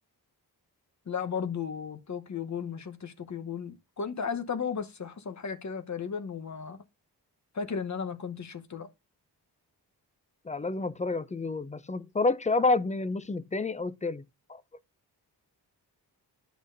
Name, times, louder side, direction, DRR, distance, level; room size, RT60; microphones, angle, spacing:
voice 1, 1.1-6.8 7.5-8.9, left 6 dB, 45° left, 1.1 m, -35 dB
voice 2, 10.4-14.2 14.5-14.6, left 3 dB, 15° left, 0.6 m, -29 dB
10.5 x 6.1 x 2.6 m
cardioid pair, 85°, 41 cm